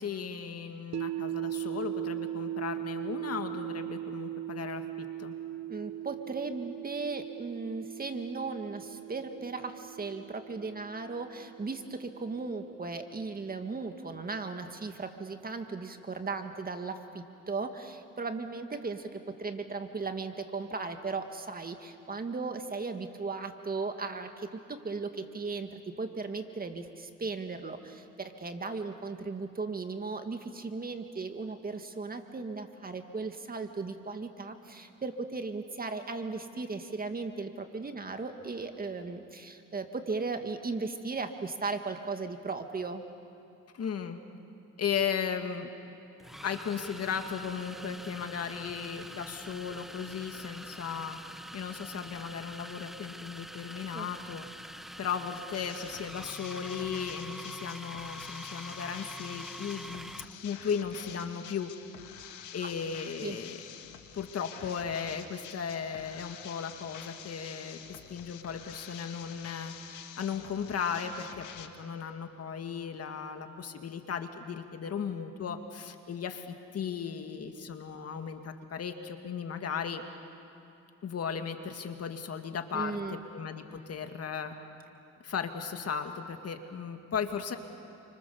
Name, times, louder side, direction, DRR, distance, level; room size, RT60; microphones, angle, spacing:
voice 1, 0.0-5.3 43.7-44.2 44.8-45.7 46.4-51.2 51.5-54.4 55.0-60.1 60.4-61.7 62.5-63.6 64.1-69.7 70.2-80.0 81.0-84.5 85.2-87.6, left 7 dB, 55° left, 6 dB, 2.1 m, -36 dB
sound 1, 0.9-13.0, right 12 dB, 65° right, 0.6 m, -39 dB
voice 2, 5.7-43.0 53.9-54.1 62.6-62.7 63.2-63.4 82.7-83.2, right 4 dB, 30° right, 6 dB, 1.9 m, -37 dB
sound 2, 44.9-45.0 46.2-60.4, equal, ahead, 0.7 m, -45 dB
sound 3, 55.5-71.7, left 9 dB, 80° left, 1.8 m, -48 dB
29.5 x 25.5 x 7.0 m, 2.8 s
cardioid pair, 90°, 30 cm